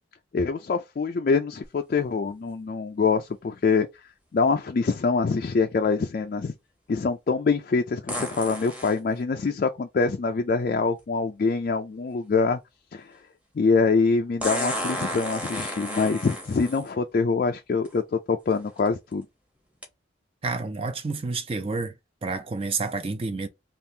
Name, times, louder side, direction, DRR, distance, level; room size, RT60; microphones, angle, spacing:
voice 1, 0.3-3.9 4.3-6.5 6.9-12.6 12.9-13.1 13.6-19.3, left 4 dB, 45° left, 0.3 m, -24 dB
sound 1, 1.6-1.7 8.1-9.0 11.0-11.1 14.4-16.9 17.8-17.9 18.6-18.9 19.8-19.9, equal, 5° right, 0.9 m, -32 dB
voice 2, 20.4-21.9 22.2-23.5, right 3 dB, 30° right, 0.4 m, -29 dB
3.5 x 2.4 x 2.7 m
head